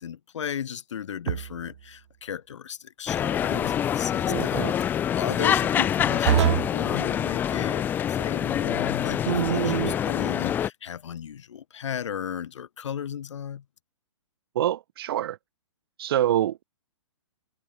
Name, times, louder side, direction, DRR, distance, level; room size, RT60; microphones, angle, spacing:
voice 1, 0.0-13.6, left 8 dB, 70° left, 3.3 m, -35 dB
sound 1, 1.3-1.7 4.3-4.7 6.3-6.8 9.3-10.0, right 11 dB, 65° right, 0.4 m, -25 dB
sound 2, 3.1-10.7, left 9 dB, 10° left, 1.1 m, -26 dB
voice 2, 3.4-3.7 14.5-15.4 16.0-16.6, right 12 dB, 50° right, 3.1 m, -26 dB
hypercardioid pair, 165°, 16 cm